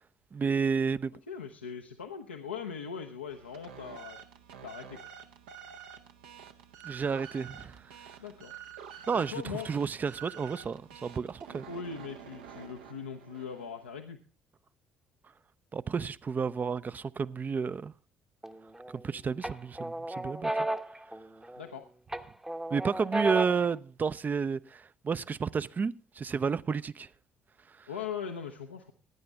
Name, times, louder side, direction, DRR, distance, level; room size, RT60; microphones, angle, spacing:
voice 1, 0.3-1.1 6.8-7.8 9.1-11.6 15.7-17.9 18.9-20.7 22.7-27.1 27.7-27.9, right 5 dB, 30° right, 0.5 m, -31 dB
voice 2, 1.3-4.2 4.6-5.0 8.2-8.5 9.1-9.7 11.7-14.2 21.6-21.9 27.9-28.9, left 6 dB, 85° left, 0.7 m, -40 dB
sound 1, 3.3-13.9, right 8 dB, 75° right, 0.8 m, -49 dB
sound 2, 18.4-19.0 19.4-21.7 22.1-23.7, right 1 dB, 10° right, 0.8 m, -34 dB
17.5 x 9.5 x 3.4 m
figure-of-eight pair, 50°, 6 cm